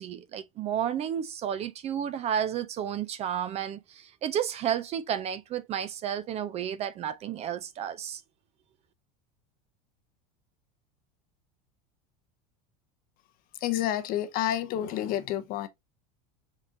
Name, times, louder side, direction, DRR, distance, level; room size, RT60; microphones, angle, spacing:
voice 1, 0.0-8.2, right 9 dB, 35° right, 0.4 m, -32 dB
voice 2, 13.6-15.7, left 12 dB, 50° left, 0.6 m, -29 dB
4.9 x 3.7 x 2.6 m
supercardioid pair, 115°, 19 cm